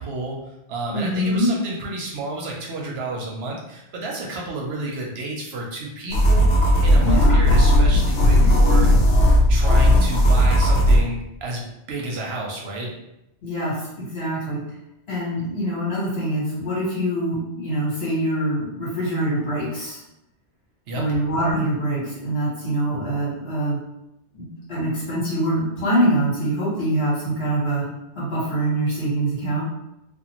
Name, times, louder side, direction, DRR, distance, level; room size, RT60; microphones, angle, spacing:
voice 1, 0.0-8.9 9.5-12.9 20.9-21.2, right 2 dB, 70° right, -1 dB, 0.8 m, -31 dB
voice 2, 0.9-1.5 7.0-7.4 13.4-14.6 15.1-20.0 20.9-23.8 24.3-27.9 28.1-29.6, right 1 dB, 60° left, -8 dB, 1.5 m, -24 dB
sound 1, 6.1-11.0, equal, 80° left, 0.9 m, -16 dB
2.5 x 2.4 x 2.8 m, 0.85 s
omnidirectional pair, 1.2 m